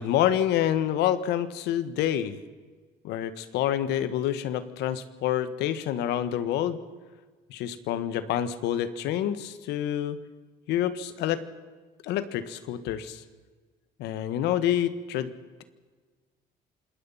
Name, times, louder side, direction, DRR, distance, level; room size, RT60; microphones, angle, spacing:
voice 1, 0.0-2.4 3.0-6.8 7.5-10.2 10.7-11.4 12.0-13.2 14.0-15.3, left 11 dB, 85° left, 13 dB, 1.6 m, -27 dB
26.5 x 20.0 x 5.7 m, 1.4 s
cardioid pair, 110°, 17 cm